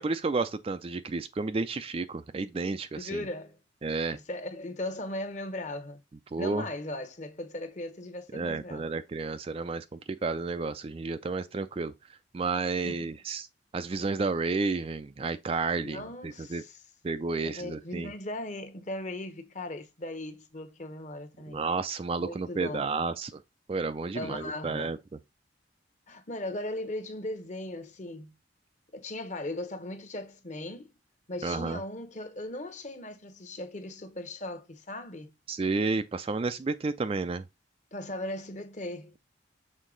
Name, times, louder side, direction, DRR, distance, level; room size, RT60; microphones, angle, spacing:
voice 1, 0.0-3.2 3.8-4.2 6.3-6.6 8.3-13.5 13.7-16.6 17.0-18.1 21.5-23.4 23.7-25.2 31.4-31.8 35.5-37.4, right 3 dB, 30° right, 0.3 m, -31 dB
voice 2, 3.0-3.6 4.1-6.0 6.4-8.8 12.9-13.1 15.8-16.8 17.4-21.6 22.2-22.9 24.1-24.9 26.1-28.3 28.9-30.9 31.3-35.3 37.9-39.2, left 1 dB, 40° left, 1.0 m, -38 dB
6.5 x 4.0 x 3.8 m
head